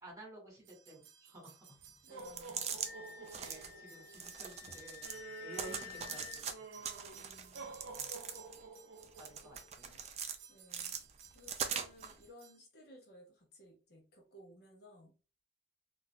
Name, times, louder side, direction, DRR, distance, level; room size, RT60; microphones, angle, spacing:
voice 1, 0.0-1.7 3.2-6.5 8.0-8.1 9.2-10.0, right 1 dB, 15° right, -3 dB, 1.7 m, -53 dB
sound 1, 0.6-12.6, right 4 dB, 80° right, 0.6 m, -52 dB
voice 2, 2.0-2.7 5.7-6.2 7.1-7.8 9.8-10.0 10.5-11.0 11.3-15.1, equal, 55° left, 1 dB, 0.8 m, -58 dB
sound 2, 2.2-2.9 3.3-3.7 4.1-5.2 5.5-6.5 6.8-8.6 9.0-10.4 10.7-12.1, right 7 dB, 35° right, 0.4 m, -41 dB
Wind instrument woodwind instrument, 2.8-6.4, left 10 dB, 10° left, 1.4 m, -51 dB
3.8 x 2.5 x 2.2 m, 0.33 s
head